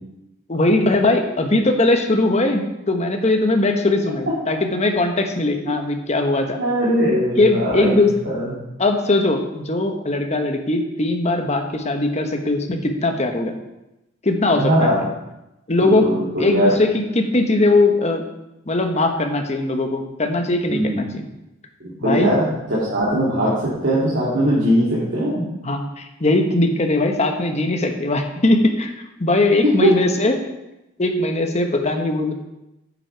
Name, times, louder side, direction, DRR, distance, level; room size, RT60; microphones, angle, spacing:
voice 1, 0.5-6.6 7.4-8.1 8.8-13.5 14.2-15.0 15.7-16.0 16.4-18.2 18.7-21.3 22.0-22.3 25.6-28.9 29.2-30.4 31.0-32.3, left 2 dB, 35° left, 5 dB, 1.0 m, -20 dB
voice 2, 6.5-8.5 14.6-15.0 15.8-16.7 20.7-21.0 21.8-25.4 29.6-29.9, equal, 65° right, -8 dB, 2.4 m, -20 dB
9.5 x 7.7 x 4.6 m, 0.94 s
head